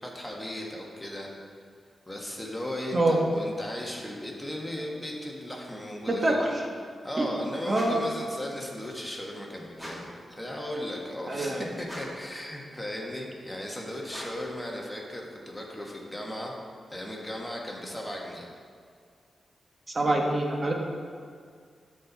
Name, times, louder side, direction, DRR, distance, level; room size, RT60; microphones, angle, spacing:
voice 1, 0.0-1.3 2.1-6.4 7.0-10.0 10.3-16.5 16.9-18.5, left 1 dB, 10° left, -1 dB, 1.6 m, -36 dB
voice 2, 6.1-6.5 7.2-7.3 7.7-8.0 11.3-11.7 19.9-20.7, right 2 dB, 35° right, 0 dB, 1.3 m, -25 dB
sound 1, 7.7-8.2 9.7-10.2 11.8-12.3 14.1-14.6, equal, 10° right, 2.1 m, -42 dB
13.0 x 4.4 x 4.1 m, 2.1 s
cardioid pair, 75°, 0 cm